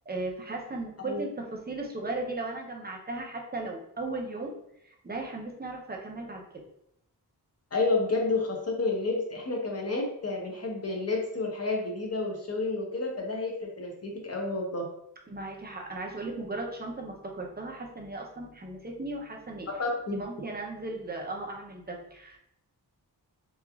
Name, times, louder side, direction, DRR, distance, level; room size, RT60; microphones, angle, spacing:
voice 1, 0.1-4.5 4.8-6.5 15.3-19.7 20.1-22.4, right 2 dB, 25° right, 0 dB, 0.5 m, -36 dB
voice 2, 7.7-14.8 19.8-20.2, left 3 dB, 40° left, 0 dB, 0.7 m, -30 dB
3.0 x 2.4 x 2.3 m, 0.77 s
wide cardioid pair, 100°, 40 cm